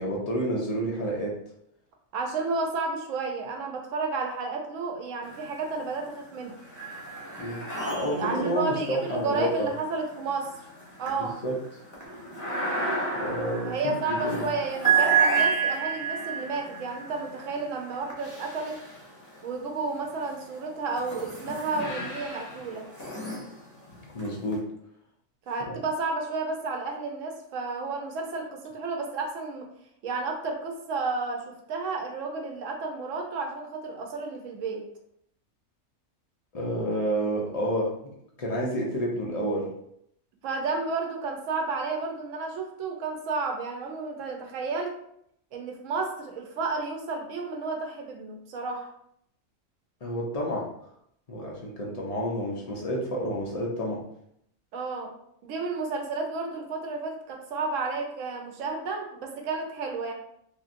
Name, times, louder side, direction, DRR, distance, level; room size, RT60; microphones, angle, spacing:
voice 1, 0.0-1.3 7.4-9.7 11.2-11.5 13.1-14.5 24.1-24.6 25.7-25.8 36.5-37.9 38.4-39.7 50.0-50.6 51.3-54.0, equal, 50° left, -3 dB, 0.4 m, -29 dB
voice 2, 2.1-6.5 8.2-10.7 11.0-11.4 13.6-18.8 19.4-22.9 25.5-29.7 30.0-34.8 40.4-44.9 45.5-48.9 54.7-55.1 55.4-60.1, right 3 dB, 75° right, 2 dB, 1.0 m, -32 dB
sound 1, 5.2-5.9 6.3-19.4 20.1-24.5, right 5 dB, 15° left, 0.7 m, -31 dB
3.0 x 2.5 x 2.5 m, 0.73 s
omnidirectional pair, 1.4 m